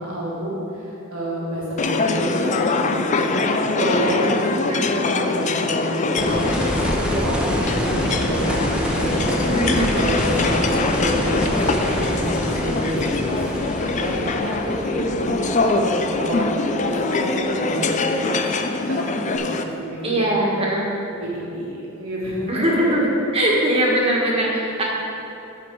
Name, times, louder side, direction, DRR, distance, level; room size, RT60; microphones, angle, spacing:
voice 1, 0.0-3.4 3.6-9.5 9.9-13.4 13.9-16.5 16.8-18.2 18.5-20.7 21.2-22.9, equal, 85° right, -6 dB, 1.7 m, -29 dB
sound 1, 1.8-19.6, left 3 dB, 35° left, 0.4 m, -23 dB
voice 2, 3.8-4.3 4.7-4.9 9.5-10.0 20.0-20.9 22.5-23.1 23.3-24.8, right 1 dB, 25° right, -3 dB, 1.4 m, -21 dB
sound 2, 6.2-17.1 19.4-19.5, equal, 5° right, 0.9 m, -26 dB
14.0 x 5.0 x 4.5 m, 3.0 s
head